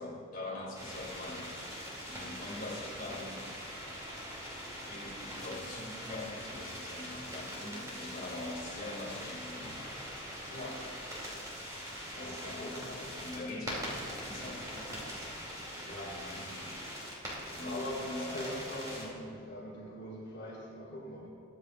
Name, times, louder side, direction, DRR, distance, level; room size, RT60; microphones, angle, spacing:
voice 1, 0.0-3.5 4.9-10.1 10.6-10.7 12.2-15.1 17.5-18.5, left 2 dB, 40° left, -4 dB, 2.4 m, -43 dB
sound 1, 0.7-19.0, equal, 15° right, 2.6 m, -42 dB
voice 2, 10.5-10.9 12.1-12.9 15.8-16.8 17.6-21.3, left 1 dB, 55° left, -7 dB, 2.3 m, -42 dB
21.5 x 7.4 x 2.5 m, 2.2 s
head